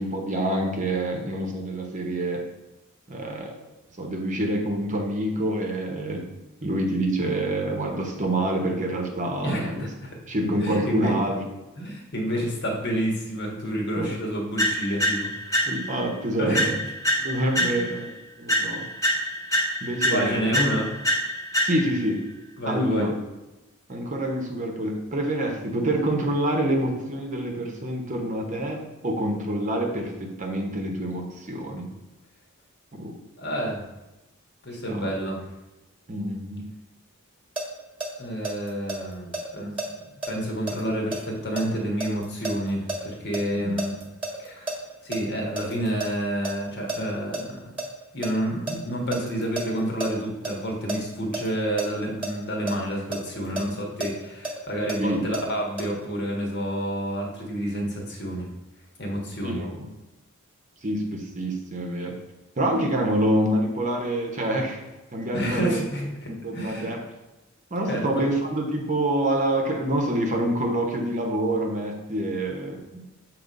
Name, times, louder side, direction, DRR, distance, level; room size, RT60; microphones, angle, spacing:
voice 1, 0.0-2.4 3.1-3.6 4.0-6.2 6.6-9.9 10.3-11.4 12.4-12.5 14.0-14.2 15.7-16.8 17.2-18.1 18.4-18.9 19.8-20.6 21.6-22.2 22.6-23.1 23.9-31.9 33.0-33.1 34.9-35.1 36.1-36.7 43.6-43.8 53.5-53.6 55.0-55.2 59.4-59.9 60.8-62.2 62.6-64.8 65.1-65.8 66.3-67.0 67.7-73.0, right 1 dB, 35° right, 2 dB, 0.9 m, -27 dB
voice 2, 9.4-10.1 10.6-11.1 11.8-15.7 16.4-16.7 17.5-17.9 20.1-20.9 22.6-23.1 33.4-33.8 34.6-35.4 38.2-39.7 40.3-43.9 44.4-47.8 48.1-58.5 59.0-59.6 65.3-66.1 66.5-66.9 67.9-68.2, equal, 50° left, -1 dB, 1.5 m, -29 dB
sound 1, 14.6-16.1 16.5-18.1 18.5-22.1, equal, 15° left, 1.1 m, -26 dB
sound 2, 37.6-43.4 43.8-46.1 46.4-46.5 46.9-47.4 47.8-51.0 51.3-51.5 51.8-51.9 52.2-52.3 52.7-55.4 55.8-55.9, right 2 dB, 5° right, 1.5 m, -31 dB
7.6 x 3.1 x 5.2 m, 1.0 s
head